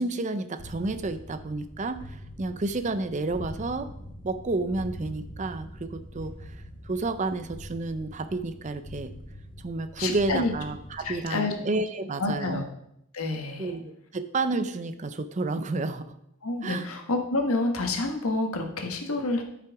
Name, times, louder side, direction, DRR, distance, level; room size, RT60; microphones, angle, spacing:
voice 1, 0.0-3.9 4.2-6.6 6.8-9.1 9.6-12.6 13.6-16.1 16.6-16.9, right 3 dB, 35° right, 11 dB, 0.5 m, -30 dB
sound 1, 0.6-11.2, equal, 40° left, 1.4 m, -43 dB
voice 2, 10.0-10.5 11.0-11.5 12.2-12.7 13.1-13.7 16.4-19.4, left 2 dB, 85° left, 4 dB, 1.4 m, -28 dB
9.9 x 5.8 x 4.7 m, 0.77 s
head